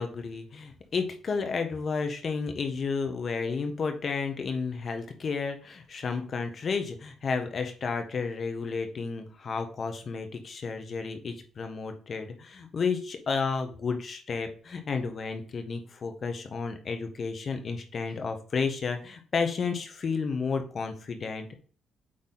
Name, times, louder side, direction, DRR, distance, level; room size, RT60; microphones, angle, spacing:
voice 1, 0.0-21.6, left 5 dB, 45° left, 6 dB, 1.4 m, -32 dB
8.8 x 3.5 x 4.1 m, 0.42 s
cardioid pair, 90°, 0 cm